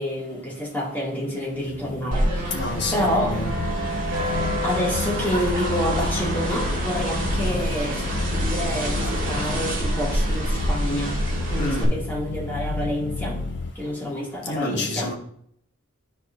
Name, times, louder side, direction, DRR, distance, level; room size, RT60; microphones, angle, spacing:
voice 1, 0.0-2.6 2.9-3.4 4.6-11.1 11.5-13.4 13.8-15.1, equal, 10° left, -5 dB, 2.2 m, -28 dB
Score Drone, 1.6-13.7, left 3 dB, 85° left, 0.6 m, -31 dB
sound 1, 2.1-11.8, right 1 dB, 40° right, 2.0 m, -27 dB
voice 2, 2.5-3.5 11.6-11.9 14.5-15.1, left 1 dB, 55° left, -1 dB, 1.4 m, -28 dB
13.5 x 4.7 x 2.6 m, 0.68 s
head